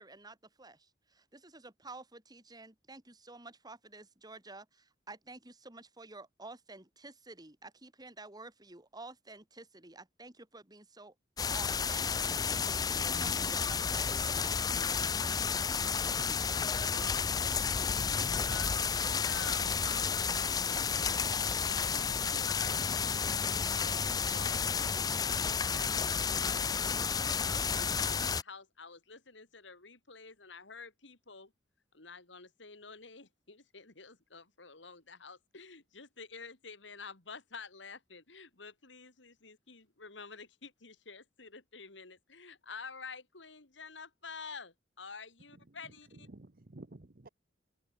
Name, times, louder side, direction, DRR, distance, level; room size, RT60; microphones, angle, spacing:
voice 1, 0.0-11.1 11.5-14.7, right 2 dB, 20° right, 3.7 m, -51 dB
sound 1, 11.4-28.4, left 6 dB, 20° left, 0.4 m, -31 dB
voice 2, 16.9-23.4 23.8-31.5 31.9-46.3, left 4 dB, 75° left, 3.0 m, -50 dB
voice 3, 45.5-47.3, right 2 dB, 50° right, 1.1 m, -53 dB
open air
head